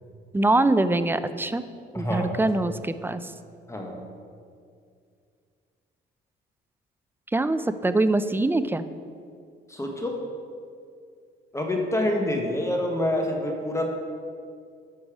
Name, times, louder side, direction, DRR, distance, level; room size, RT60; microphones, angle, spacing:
voice 1, 0.3-1.6 2.0-3.3 7.3-8.8, right 2 dB, 10° right, 12 dB, 0.3 m, -23 dB
voice 2, 1.9-2.4 3.7-4.1 9.7-10.2 11.5-13.8, left 1 dB, 15° left, 2 dB, 1.2 m, -27 dB
8.3 x 5.4 x 4.9 m, 2.3 s
cardioid pair, 90°, 20 cm